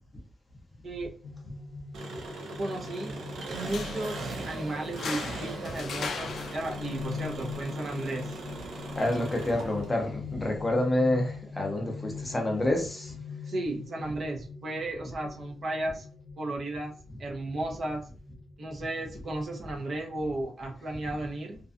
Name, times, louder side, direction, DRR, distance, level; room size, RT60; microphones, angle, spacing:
sound 1, 1.2-20.4, left 5 dB, 40° left, 1.1 m, -43 dB
Engine, 1.9-10.1, right 2 dB, 85° right, 0.5 m, -40 dB
voice 1, 2.6-3.2 3.5-8.4 9.1-9.2 13.5-16.1 16.4-16.9 17.2-18.0 18.6-21.6, right 2 dB, 45° right, 0.7 m, -34 dB
sound 2, 3.5-10.5, left 5 dB, 65° left, 0.3 m, -42 dB
voice 2, 8.9-13.1, left 1 dB, 15° left, 0.6 m, -28 dB
2.5 x 2.2 x 2.5 m
wide cardioid pair, 140°, 0 cm